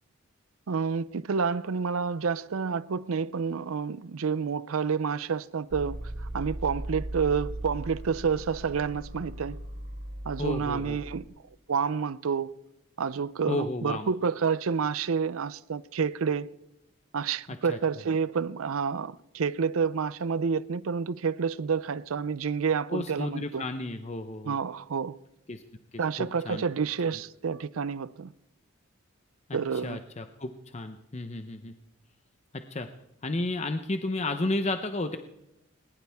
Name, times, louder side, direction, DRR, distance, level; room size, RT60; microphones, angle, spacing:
voice 1, 0.7-9.6 10.3-11.3 11.7-12.5 13.0-16.5 17.1-23.7 24.5-25.2 26.0-28.3 29.5-30.0, right 6 dB, 85° right, 0.5 m, -29 dB
sound 1, 5.7-11.2, right 1 dB, 45° right, 1.5 m, -38 dB
voice 2, 10.4-11.0 13.5-14.1 17.5-17.8 22.9-24.6 25.5-25.6 26.2-26.6 29.5-31.7 32.7-32.9 33.2-35.2, left 2 dB, 30° left, 0.7 m, -32 dB
21.0 x 19.5 x 3.5 m
head